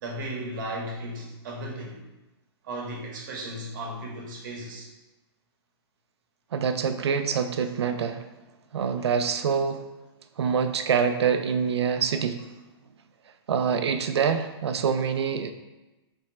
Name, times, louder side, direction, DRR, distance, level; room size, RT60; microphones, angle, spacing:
voice 1, 0.0-2.0 2.6-4.9, right 1 dB, 50° right, -1 dB, 1.2 m, -35 dB
voice 2, 6.5-8.2 8.7-9.8 10.4-12.4 13.5-15.5, right 6 dB, 90° right, 8 dB, 0.5 m, -25 dB
3.4 x 2.9 x 4.4 m, 1.1 s
hypercardioid pair, 160°, 14 cm